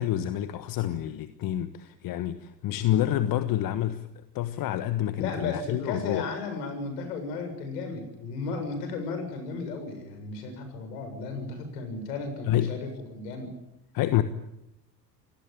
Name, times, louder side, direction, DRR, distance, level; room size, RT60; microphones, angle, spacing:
voice 1, 0.0-6.2 12.4-12.8 13.9-14.2, left 12 dB, 40° left, 1.4 m, -28 dB
voice 2, 5.2-13.5, left 4 dB, 65° left, 7.4 m, -34 dB
27.5 x 18.5 x 9.0 m
figure-of-eight pair, 75°, 50 cm